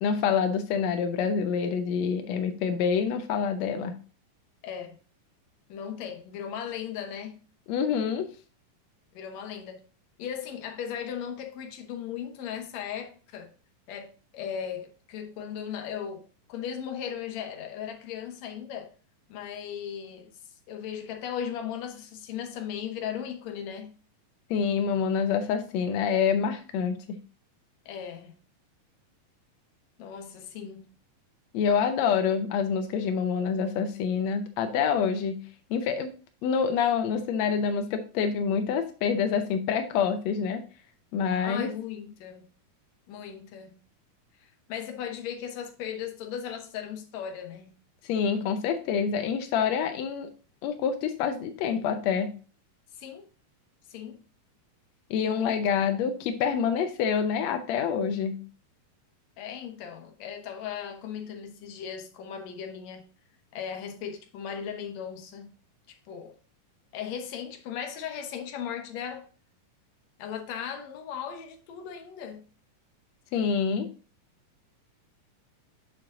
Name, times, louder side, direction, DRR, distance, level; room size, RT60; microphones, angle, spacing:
voice 1, 0.0-4.0 7.7-8.3 24.5-27.2 31.5-36.1 36.4-40.6 41.1-41.7 48.0-50.3 50.6-52.3 55.1-58.5 73.3-73.9, left 6 dB, 85° left, 1.5 m, -27 dB
voice 2, 4.6-5.0 5.7-7.4 9.1-9.8 10.2-13.5 13.9-16.2 16.5-18.9 19.3-20.3 20.7-23.9 27.9-28.3 30.0-30.9 41.4-42.5 43.1-43.8 44.4-47.8 52.9-53.3 53.9-54.2 55.2-55.6 59.4-63.1 63.5-65.5 65.9-66.3 66.9-69.3 70.2-72.4, left 8 dB, 65° left, 1.9 m, -37 dB
7.3 x 6.7 x 2.5 m
omnidirectional pair, 4.0 m